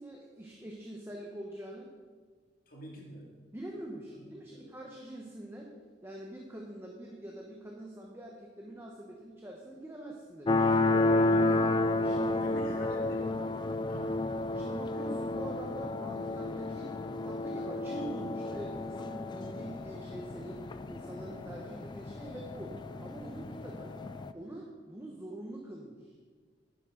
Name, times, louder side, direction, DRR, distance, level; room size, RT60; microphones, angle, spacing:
voice 1, 0.0-1.9 3.5-5.7 6.0-10.8 12.0-12.6 14.5-16.9 17.2-20.6 20.9-22.7 23.0-23.9 24.3-26.1, right 1 dB, 15° right, -1 dB, 1.0 m, -44 dB
voice 2, 2.7-3.3 4.2-4.7 11.2-11.9 12.4-13.4 13.8-14.2, equal, 55° left, -2 dB, 2.3 m, -47 dB
sound 1, 10.5-24.3, left 2 dB, 25° left, 0.3 m, -31 dB
10.5 x 9.8 x 3.8 m, 1.5 s
head